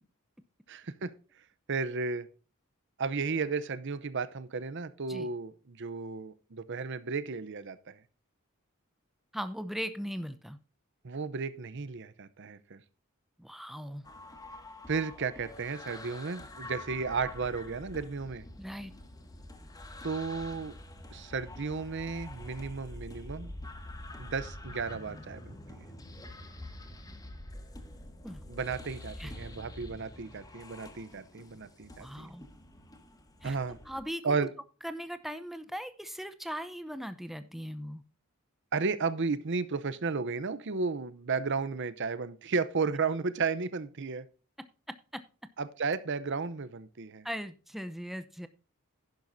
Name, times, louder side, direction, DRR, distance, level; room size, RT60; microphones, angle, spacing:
voice 1, 0.7-1.1 1.7-2.3 3.0-8.0 11.0-12.8 14.9-18.4 20.0-20.7 21.1-23.5 24.2-25.9 28.5-32.3 33.4-33.8 34.2-34.5 38.7-44.3 45.6-47.2, right 4 dB, 55° right, 15 dB, 0.7 m, -33 dB
voice 2, 9.3-10.6 13.4-14.0 18.6-18.9 28.2-28.4 29.2-29.3 32.0-32.5 33.4-33.6 33.9-34.4 34.8-38.0 44.6-44.7 45.1-45.2 47.2-48.5, equal, ahead, 11 dB, 0.7 m, -39 dB
sound 1, 14.0-34.0, left 1 dB, 15° left, 1.3 m, -46 dB
11.0 x 10.5 x 2.7 m, 0.35 s
head